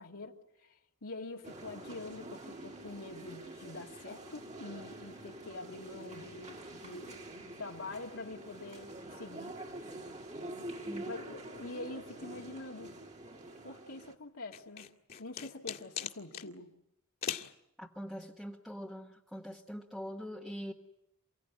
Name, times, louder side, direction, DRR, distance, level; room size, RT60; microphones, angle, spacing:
voice 1, 0.0-7.1 7.4-9.5 11.1-12.9 13.6-14.9 15.2-16.7, left 2 dB, 75° left, 0 dB, 2.4 m, -45 dB
sound 1, 1.4-14.1, right 1 dB, 30° right, 2.3 m, -46 dB
sound 2, 14.5-16.5 17.2-17.5, left 9 dB, 45° left, 2.0 m, -39 dB
voice 2, 17.8-20.7, equal, ahead, -1 dB, 1.3 m, -43 dB
29.0 x 16.5 x 9.7 m, 0.85 s
head